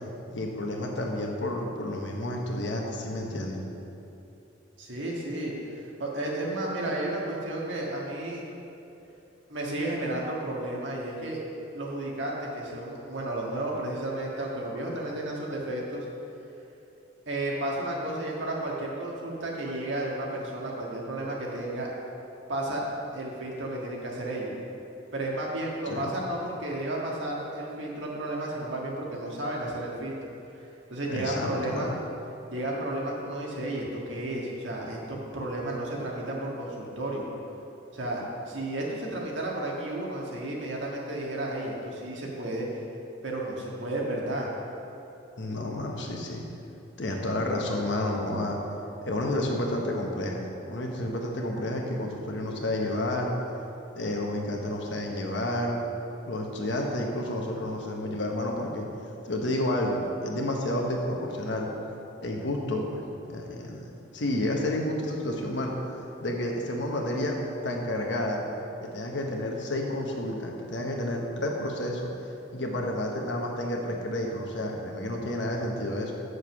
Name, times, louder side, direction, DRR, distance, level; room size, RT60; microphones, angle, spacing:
voice 1, 0.3-3.6 25.9-26.1 31.1-31.9 45.4-46.4 47.0-48.6 49.1-53.3 53.9-55.8 56.3-58.9 59.2-61.7 62.2-63.0 63.3-65.9 66.2-67.4 67.6-68.4 68.8-76.1, left 1 dB, 65° left, 0 dB, 1.2 m, -30 dB
voice 2, 4.8-8.4 9.5-11.4 11.7-16.1 17.3-21.9 22.5-22.8 23.1-24.5 25.1-30.3 30.9-31.9 32.5-37.3 37.9-42.7 43.2-44.5, right 1 dB, 70° right, -3 dB, 1.7 m, -32 dB
7.3 x 6.5 x 6.1 m, 2.9 s
head